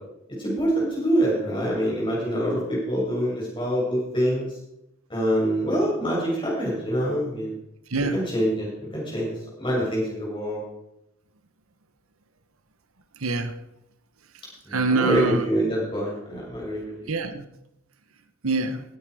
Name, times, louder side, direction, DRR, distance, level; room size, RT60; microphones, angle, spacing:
voice 1, 0.4-4.5 5.1-7.6 8.1-10.6 14.7-17.1, equal, 25° left, -4 dB, 6.9 m, -25 dB
voice 2, 13.2-13.5 14.7-15.4 17.1-17.4 18.4-18.8, right 3 dB, 85° right, 9 dB, 1.2 m, -24 dB
17.0 x 9.9 x 4.9 m, 0.83 s
head